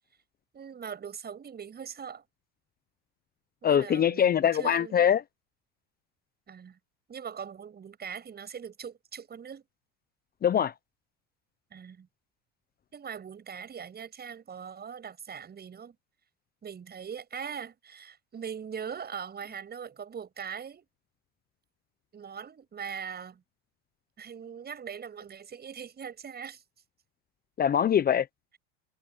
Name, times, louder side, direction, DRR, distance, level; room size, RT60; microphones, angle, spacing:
voice 1, 0.5-2.2 3.6-5.1 6.5-6.8 7.1-9.6 11.7-12.1 12.9-16.0 16.6-20.9 22.1-23.4 24.2-26.6, right 7 dB, 30° right, 7.9 m, -41 dB
voice 2, 3.6-5.2 10.4-10.7 27.6-28.3, left 9 dB, 30° left, 0.8 m, -23 dB
supercardioid pair, 105°, 31 cm